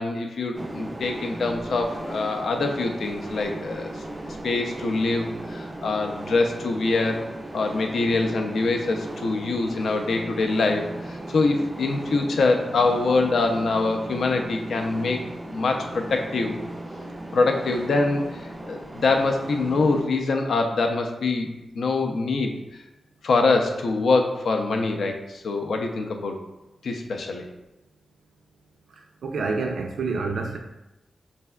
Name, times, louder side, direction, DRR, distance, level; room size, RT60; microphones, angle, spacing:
voice 1, 0.0-3.9 4.4-7.2 7.5-15.2 15.5-16.6 17.3-18.2 18.6-21.5 21.7-22.5 23.2-26.4 26.8-27.4, left 3 dB, 65° left, 4 dB, 0.4 m, -24 dB
sound 1, 0.5-20.0, right 1 dB, 15° right, 0.3 m, -37 dB
voice 2, 29.2-30.6, right 4 dB, 85° right, 2 dB, 0.4 m, -27 dB
4.2 x 3.3 x 2.2 m, 0.95 s
wide cardioid pair, 180°, 0 cm